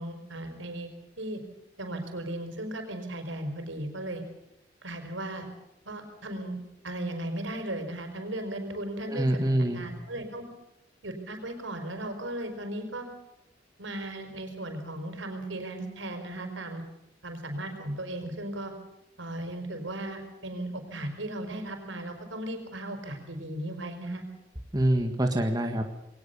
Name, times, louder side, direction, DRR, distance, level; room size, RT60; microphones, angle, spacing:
voice 1, 0.0-1.4 1.8-4.2 4.8-5.5 5.8-6.6 6.8-10.4 11.0-13.1 13.8-16.8 17.2-18.7 19.2-24.2, right 1 dB, 85° right, 6 dB, 5.0 m, -36 dB
voice 2, 9.1-9.8 24.7-25.8, right 1 dB, 20° right, 4 dB, 1.7 m, -25 dB
21.5 x 19.0 x 7.0 m, 0.90 s
head